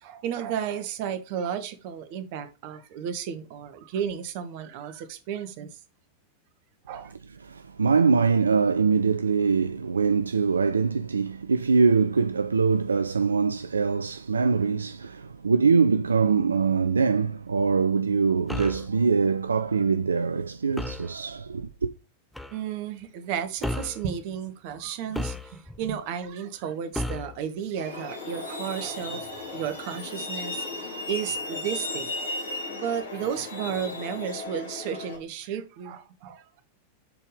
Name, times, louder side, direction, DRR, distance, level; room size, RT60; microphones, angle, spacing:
voice 1, 0.0-5.7 6.9-7.1 22.5-32.1 32.7-36.6, right 8 dB, 45° right, 1.1 m, -33 dB
voice 2, 7.4-21.9, right 5 dB, 75° right, 0.3 m, -23 dB
sound 1, 18.5-18.9 20.8-21.1 22.4-22.6 23.6-24.0 25.1-25.8 26.9-27.4, left 1 dB, 5° left, 0.5 m, -32 dB
Truck, 27.8-35.2, left 2 dB, 75° left, 2.1 m, -35 dB
6.9 x 4.4 x 3.3 m
figure-of-eight pair, 90°, 0 cm